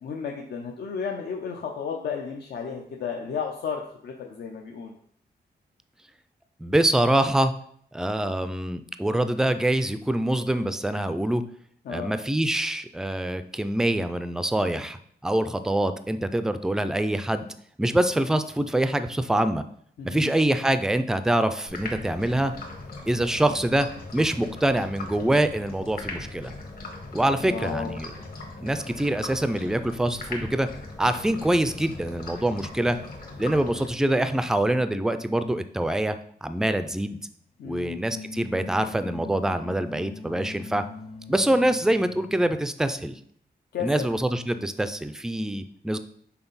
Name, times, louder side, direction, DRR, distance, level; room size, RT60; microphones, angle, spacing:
voice 1, 0.0-5.0 11.9-12.2 20.0-20.3 27.4-28.0 37.6-38.0 43.7-44.1, left 6 dB, 80° left, 1 dB, 0.6 m, -33 dB
voice 2, 6.6-7.5 7.9-11.4 11.9-17.5 17.8-19.6 20.0-22.5 23.1-26.5 27.1-28.1 28.6-30.7 31.0-33.0 33.4-37.2 37.6-40.8 41.3-43.2 43.8-46.0, right 1 dB, 5° right, 11 dB, 0.3 m, -25 dB
sound 1, 21.7-34.4, left 2 dB, 60° left, 1.4 m, -40 dB
sound 2, 37.9-42.6, left 3 dB, 35° left, 0.6 m, -41 dB
5.8 x 4.1 x 4.0 m, 0.64 s
wide cardioid pair, 130°, 17 cm